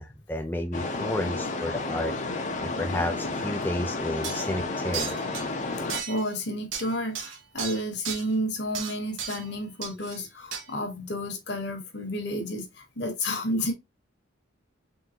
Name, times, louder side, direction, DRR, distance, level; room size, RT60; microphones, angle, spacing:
voice 1, 0.0-2.1 2.6-5.1, left 1 dB, 10° left, 0.3 m, -31 dB
sound 1, 0.7-6.0, left 3 dB, 40° left, 0.7 m, -31 dB
sound 2, 3.6-3.7 4.2-4.5 4.9-5.5 5.9-6.3 6.7-8.2 8.7-9.5 9.8-10.2 10.5-10.6, right 7 dB, 80° right, 1.0 m, -35 dB
voice 2, 6.1-12.7 13.0-13.7, equal, 60° left, 1.2 m, -31 dB
3.8 x 3.5 x 2.7 m
head